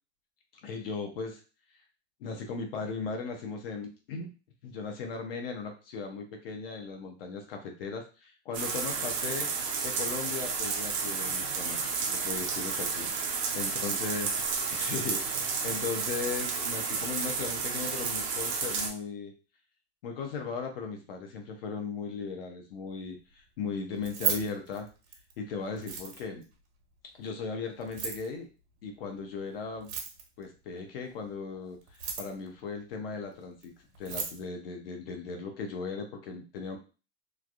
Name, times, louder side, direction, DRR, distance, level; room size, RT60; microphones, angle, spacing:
voice 1, 0.6-1.4 2.2-4.3 4.6-9.5 9.8-11.8 12.1-14.3 14.7-19.3 20.0-24.9 25.4-26.5 27.1-28.5 28.8-29.9 30.4-33.7 34.0-36.8, left 5 dB, 55° left, 4 dB, 0.6 m, -37 dB
sound 1, 8.5-18.9, right 5 dB, 30° right, 0.4 m, -31 dB
Keys jangling, 23.9-25.3 25.8-26.4 27.8-28.3 29.8-30.4 31.8-32.5 33.6-33.7 33.9-34.4, right 6 dB, 90° right, 1.2 m, -34 dB
3.2 x 2.5 x 2.3 m, 0.33 s
supercardioid pair, 175°, 34 cm